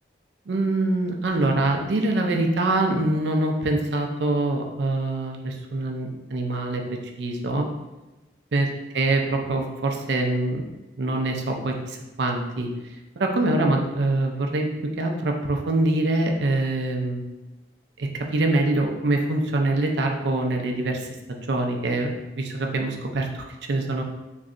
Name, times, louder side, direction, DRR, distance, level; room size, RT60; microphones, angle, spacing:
voice 1, 0.5-7.7 8.5-8.7 8.9-10.7 11.0-12.7 13.2-14.7 15.0-17.2 18.0-24.0, right 2 dB, 75° right, 3 dB, 0.5 m, -24 dB
3.6 x 3.1 x 2.5 m, 1.1 s
head